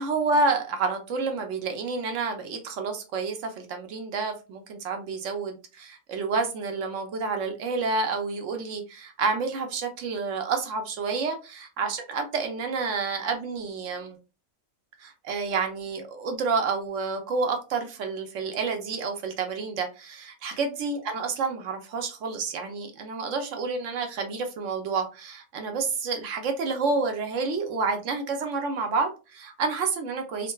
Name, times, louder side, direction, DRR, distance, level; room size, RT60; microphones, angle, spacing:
voice 1, 0.0-14.2 15.0-30.5, right 4 dB, 70° right, 0.9 m, -29 dB
3.6 x 2.2 x 2.2 m
omnidirectional pair, 1.4 m